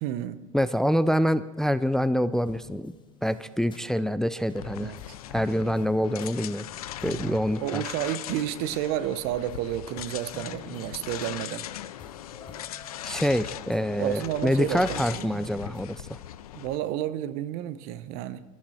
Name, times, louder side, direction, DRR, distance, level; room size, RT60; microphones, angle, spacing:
voice 1, 0.0-0.4 4.8-5.0 7.0-11.7 14.0-15.4 16.5-18.4, right 12 dB, 60° right, 0.9 m, -31 dB
voice 2, 0.5-2.9 3.2-4.9 5.3-6.7 7.0-7.8 13.0-16.2, equal, 5° left, 0.5 m, -26 dB
sound 1, 2.3-4.6 5.0-9.6 10.0-15.8, left 6 dB, 25° left, 1.0 m, -49 dB
sound 2, 4.5-16.8, left 12 dB, 80° left, 0.6 m, -39 dB
22.0 x 13.0 x 4.3 m
hypercardioid pair, 85°, 19 cm